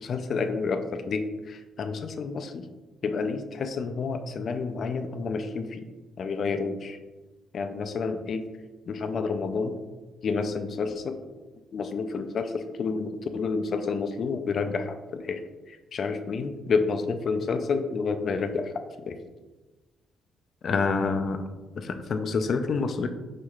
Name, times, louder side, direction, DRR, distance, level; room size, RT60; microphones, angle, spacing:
voice 1, 0.0-2.6 3.0-5.8 6.2-7.0 7.5-8.4 8.9-9.7 10.2-11.2 11.7-15.4 15.7-18.7 19.1-19.2 20.6-21.5 21.8-23.1, left 4 dB, 55° left, 8 dB, 0.4 m, -29 dB
4.8 x 4.1 x 2.3 m, 1.2 s
cardioid pair, 90°, 0 cm